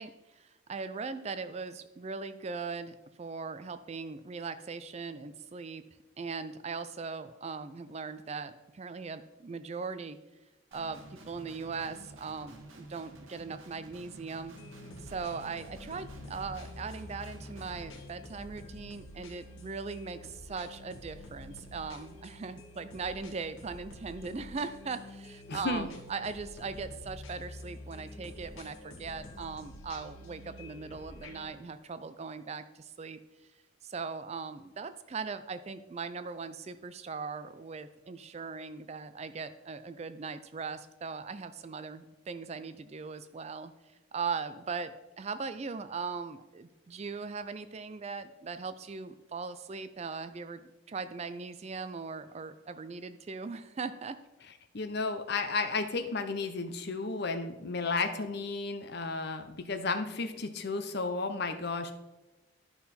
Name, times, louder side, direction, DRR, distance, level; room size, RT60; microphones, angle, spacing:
voice 1, 0.0-5.8 6.2-10.2 10.7-14.5 15.0-33.2 33.8-43.7 44.1-54.2, right 5 dB, 30° right, 11 dB, 0.3 m, -39 dB
Guitar, 10.7-17.9, right 2 dB, 75° right, 1.3 m, -51 dB
sound 1, 14.5-31.5, left 1 dB, 75° left, 1.5 m, -48 dB
voice 2, 25.5-25.9 54.7-61.9, left 3 dB, 50° left, 8 dB, 0.7 m, -33 dB
12.0 x 5.6 x 4.2 m, 1.0 s
head